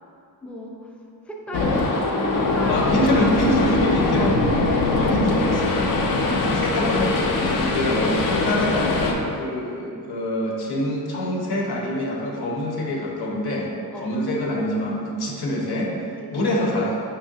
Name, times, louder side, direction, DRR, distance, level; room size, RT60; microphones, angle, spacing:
voice 1, 0.4-0.9 1.3-1.9 2.4-3.5 4.2-4.7 13.9-14.1 16.2-16.8, left 1 dB, 5° left, -1 dB, 0.3 m, -32 dB
sound 1, 1.5-9.1, left 3 dB, 60° left, 0.5 m, -22 dB
voice 2, 2.7-4.3 5.0-5.6 6.5-15.9 16.3-17.0, left 1 dB, 90° left, -1 dB, 0.8 m, -25 dB
5.6 x 3.1 x 2.7 m, 2.5 s
wide cardioid pair, 155°, 37 cm